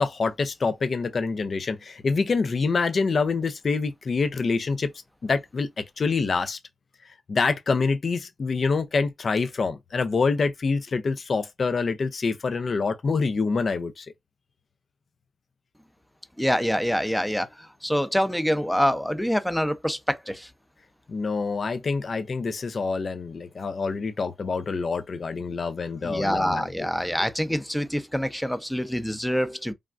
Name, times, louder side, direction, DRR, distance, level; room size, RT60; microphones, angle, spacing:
voice 1, 0.0-4.9 5.2-6.6 7.3-14.1 21.1-26.9, left 4 dB, 55° left, 0.6 m, -26 dB
voice 2, 16.4-20.5 26.0-29.7, equal, 5° left, 0.6 m, -26 dB
3.4 x 2.3 x 2.5 m
supercardioid pair, 50°, 0 cm